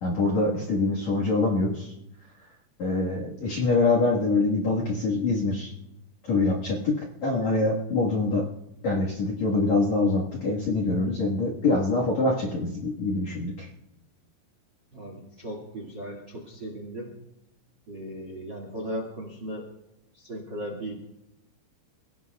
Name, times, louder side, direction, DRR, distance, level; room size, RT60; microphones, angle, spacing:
voice 1, 0.0-1.9 2.8-5.7 6.3-8.4 8.8-13.7, left 3 dB, 55° left, -2 dB, 2.1 m, -25 dB
voice 2, 14.9-17.1 17.9-19.7 20.1-20.9, right 1 dB, 40° right, 1 dB, 1.7 m, -37 dB
29.5 x 17.0 x 2.4 m, 0.91 s
omnidirectional pair, 5.4 m